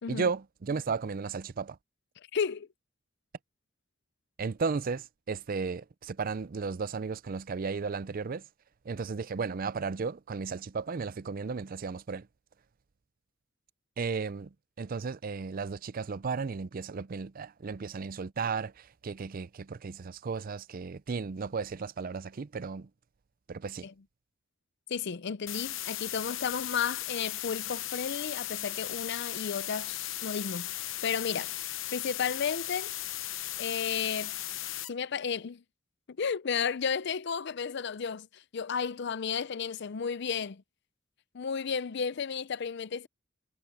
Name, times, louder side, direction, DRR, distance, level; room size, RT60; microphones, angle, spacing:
voice 1, 0.1-1.8 4.4-8.4 8.8-12.3 14.0-22.9 23.5-23.9, right 5 dB, 45° right, 0.5 m, -34 dB
voice 2, 2.3-2.7 23.8-23.9 24.9-31.5 31.9-32.9 33.6-34.4 34.9-35.6 36.2-40.6 41.3-43.1, left 6 dB, 60° left, 0.5 m, -33 dB
sound 1, 25.5-34.9, left 14 dB, 75° left, 0.9 m, -37 dB
head